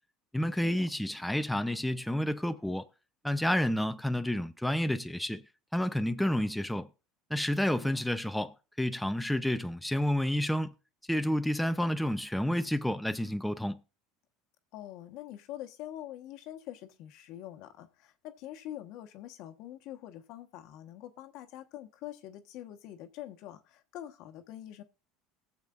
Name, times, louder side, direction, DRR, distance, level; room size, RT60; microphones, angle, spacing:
voice 1, 0.3-2.9 3.2-5.4 5.7-6.9 7.3-10.7 11.1-13.8, left 1 dB, 5° left, 0.6 m, -30 dB
voice 2, 7.8-8.1 14.7-24.8, left 12 dB, 65° left, 1.2 m, -45 dB
20.0 x 7.3 x 2.5 m
supercardioid pair, 110°, 0 cm